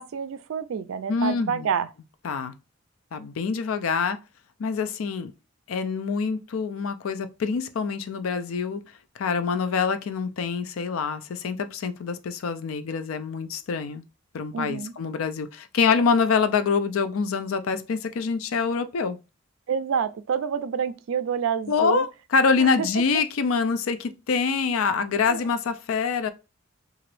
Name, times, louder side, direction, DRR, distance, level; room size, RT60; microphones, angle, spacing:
voice 1, 0.0-1.9 14.5-14.9 19.7-22.1 22.6-22.9 25.3-25.4, right 7 dB, 75° right, 0.3 m, -28 dB
voice 2, 1.1-1.7 2.2-2.5 3.1-4.2 4.6-5.3 5.7-8.8 9.2-14.0 14.3-19.2 21.7-26.3, left 5 dB, 85° left, 0.4 m, -25 dB
2.9 x 2.5 x 3.1 m
head